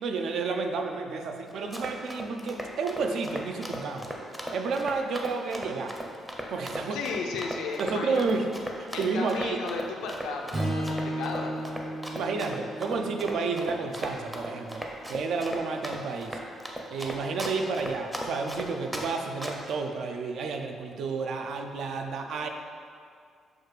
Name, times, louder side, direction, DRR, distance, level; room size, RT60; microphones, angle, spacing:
voice 1, 0.0-4.1 4.5-5.9 6.5-7.0 7.8-8.5 8.8-9.6 12.1-14.8 15.1-16.4 16.9-22.5, right 4 dB, 70° right, 4 dB, 0.4 m, -31 dB
Run, 1.5-19.1 19.4-19.7, equal, 10° right, 0.5 m, -37 dB
voice 2, 6.9-8.4 8.9-11.9, left 4 dB, 90° left, 1 dB, 0.4 m, -35 dB
Strum, 10.5-14.9, right 1 dB, 35° right, 0.7 m, -35 dB
6.2 x 2.4 x 3.2 m, 2.3 s
cardioid pair, 90°, 0 cm